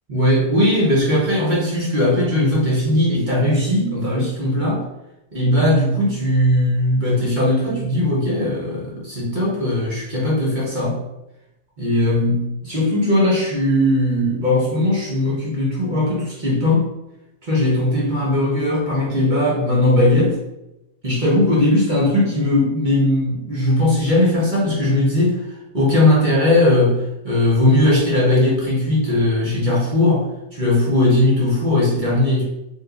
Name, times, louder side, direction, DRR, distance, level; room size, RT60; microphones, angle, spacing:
voice 1, 0.1-4.8 5.3-11.0 11.8-16.8 17.4-20.4 21.0-27.0 27.2-32.4, left 1 dB, 45° right, -4 dB, 0.8 m, -18 dB
2.9 x 2.3 x 3.8 m, 0.92 s
omnidirectional pair, 1.4 m